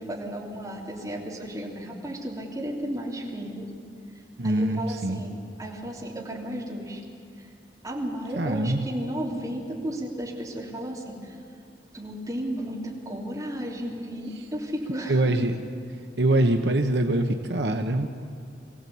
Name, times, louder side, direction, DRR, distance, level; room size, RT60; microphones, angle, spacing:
voice 1, 0.0-3.7 4.4-7.0 7.4-7.5 7.8-11.4 11.9-15.3, right 1 dB, 20° right, -3 dB, 3.3 m, -34 dB
voice 2, 4.4-5.2 8.3-8.9 15.1-15.5 16.2-18.1, right 1 dB, 70° right, 5 dB, 1.0 m, -23 dB
23.0 x 16.5 x 8.5 m, 2.5 s
head